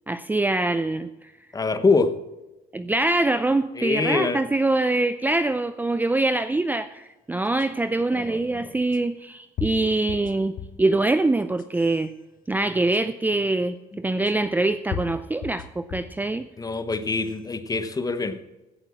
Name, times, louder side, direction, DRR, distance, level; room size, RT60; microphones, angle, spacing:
voice 1, 0.1-1.1 2.7-12.1 12.5-16.5, right 2 dB, 10° right, 11 dB, 0.5 m, -24 dB
voice 2, 1.5-2.2 3.8-4.4 8.1-8.6 16.6-18.4, left 3 dB, 20° left, 11 dB, 1.1 m, -24 dB
sound 1, 7.6-7.7 8.9-9.0 9.6-10.9 11.4-12.0 12.9-13.0 14.3-14.4 14.9-16.2 16.7-17.3, left 7 dB, 55° left, 1.1 m, -35 dB
16.0 x 7.7 x 6.1 m, 1.0 s
cardioid pair, 110°, 17 cm